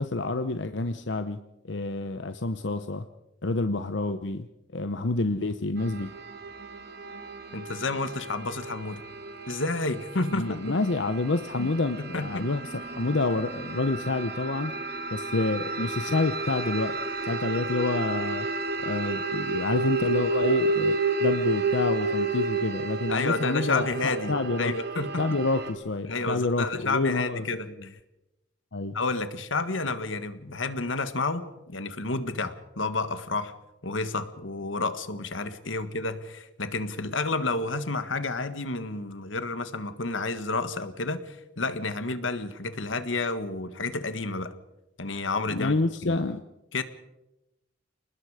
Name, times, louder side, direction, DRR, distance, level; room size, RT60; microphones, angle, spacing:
voice 1, 0.0-1.4 1.7-3.0 3.4-4.5 4.7-6.1 10.3-14.7 15.1-16.9 17.2-18.5 18.8-24.7 25.2-27.4 28.7-29.0 45.5-46.4, left 3 dB, 70° left, 9 dB, 0.9 m, -28 dB
sound 1, 5.8-25.7, right 2 dB, 60° right, 2.4 m, -31 dB
voice 2, 7.5-9.0 9.5-10.7 11.6-11.7 12.0-12.5 23.1-25.2 26.1-27.9 28.9-33.5 33.8-44.5 45.0-45.7 46.0-46.2 46.7-46.8, left 3 dB, 90° left, 10 dB, 1.7 m, -30 dB
29.0 x 20.0 x 5.0 m, 0.95 s
head